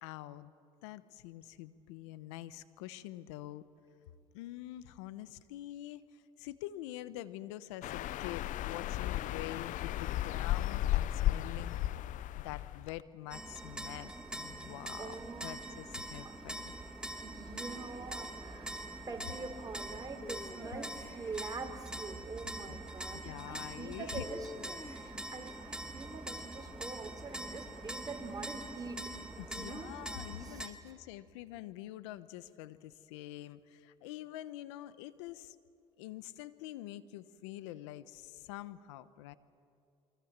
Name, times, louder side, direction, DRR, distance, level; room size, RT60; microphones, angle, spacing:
voice 1, 0.0-0.5 0.8-3.7 4.3-11.8 12.4-16.7 22.7-22.8 23.1-24.3 29.4-35.6 36.0-39.3, left 14 dB, 85° left, 15 dB, 0.9 m, -46 dB
sound 1, 7.8-13.0, left 13 dB, 60° left, 0.6 m, -34 dB
sound 2, 13.3-30.7, right 1 dB, 5° right, 2.4 m, -44 dB
voice 2, 15.0-15.7 16.2-16.3 17.2-18.8 19.1-24.5 25.0-29.0 29.5-30.0 30.4-30.6, right 4 dB, 25° right, 4 dB, 4.3 m, -44 dB
sound 3, 20.2-21.6 24.2-25.3, left 2 dB, 15° left, 1.6 m, -48 dB
29.0 x 23.5 x 7.4 m, 2.5 s
supercardioid pair, 70°, 15 cm